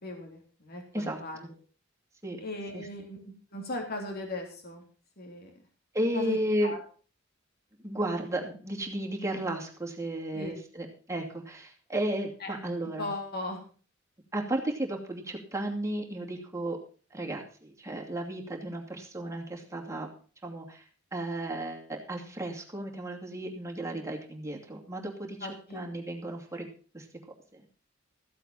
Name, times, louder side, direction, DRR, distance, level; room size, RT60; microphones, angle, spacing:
voice 1, 0.0-1.4 2.4-3.2 3.5-4.8 5.2-5.5 6.1-6.4 6.6-6.8 10.3-10.5 12.4-12.5 13.0-13.6 25.4-26.0, left 2 dB, 50° left, 2 dB, 3.2 m, -38 dB
voice 2, 0.9-1.5 2.2-2.4 2.7-2.9 5.9-6.7 7.8-13.1 14.3-16.8 17.1-20.1 20.4-20.8 21.1-26.7 26.9-27.1 27.5-27.7, right 1 dB, 15° right, 0 dB, 2.6 m, -34 dB
15.0 x 8.1 x 5.6 m, 0.40 s
head